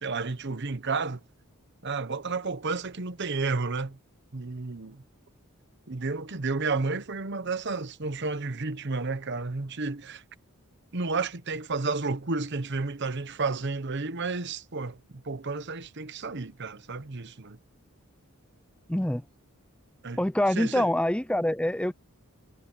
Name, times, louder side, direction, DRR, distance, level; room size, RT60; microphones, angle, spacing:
voice 1, 0.0-1.2 1.8-4.0 4.3-5.0 5.9-10.2 10.9-17.6 20.0-20.2 20.5-20.9, right 3 dB, 50° right, 1.0 m, -31 dB
voice 2, 18.9-19.2 20.2-21.9, left 1 dB, 5° left, 0.5 m, -25 dB
head